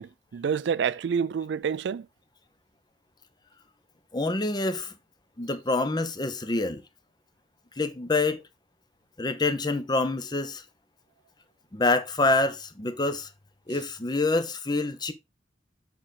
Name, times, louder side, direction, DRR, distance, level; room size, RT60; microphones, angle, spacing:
voice 1, 0.0-2.1, right 6 dB, 75° right, 0.3 m, -28 dB
voice 2, 4.1-4.9 5.4-6.8 7.8-8.4 9.2-10.6 11.7-13.3 13.7-15.1, left 2 dB, 25° left, 0.7 m, -26 dB
7.5 x 4.4 x 3.8 m
head